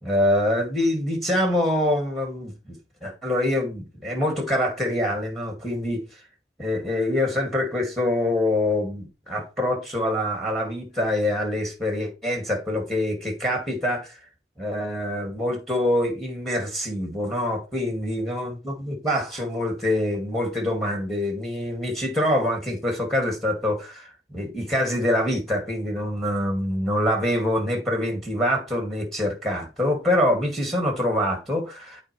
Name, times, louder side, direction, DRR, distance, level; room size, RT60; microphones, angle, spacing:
voice 1, 0.0-2.8 3.0-6.0 6.6-14.2 14.6-32.0, left 1 dB, ahead, 2.1 m, -25 dB
13.0 x 4.5 x 3.2 m
head